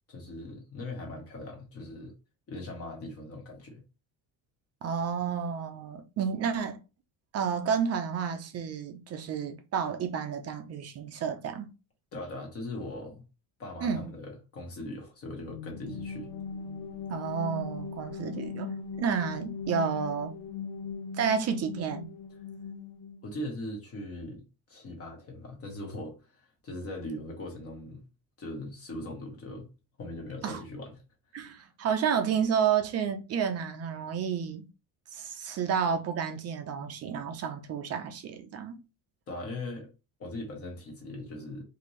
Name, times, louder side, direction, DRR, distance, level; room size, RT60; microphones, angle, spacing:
voice 1, 0.1-2.1 2.5-3.8 12.1-13.2 13.6-16.3 23.2-28.0 28.4-29.7 30.0-31.0 31.3-31.4 39.3-39.9 40.2-41.6, left 1 dB, 30° left, 1.1 m, -40 dB
voice 2, 4.8-6.8 7.3-11.7 13.8-14.1 17.1-20.4 21.1-22.1 30.4-30.6 31.3-34.6 35.1-38.8, right 7 dB, 35° right, 0.5 m, -31 dB
sound 1, 15.5-23.3, left 5 dB, 55° left, 0.6 m, -39 dB
4.2 x 2.7 x 3.1 m
cardioid pair, 180°, 43 cm